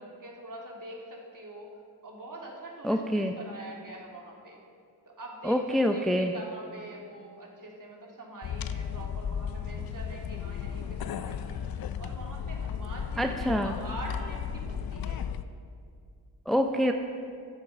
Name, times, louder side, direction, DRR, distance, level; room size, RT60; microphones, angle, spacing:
voice 1, 0.0-1.7 2.0-4.6 5.1-5.6 5.9-11.6 12.0-15.3, right 1 dB, 45° right, -1 dB, 2.9 m, -44 dB
voice 2, 2.8-3.3 5.4-6.3 13.2-13.7 16.5-16.9, equal, ahead, 5 dB, 0.7 m, -26 dB
sound 1, 8.4-15.4, left 7 dB, 55° left, 0.6 m, -35 dB
11.0 x 7.9 x 5.7 m, 2.2 s
supercardioid pair, 40°, 44 cm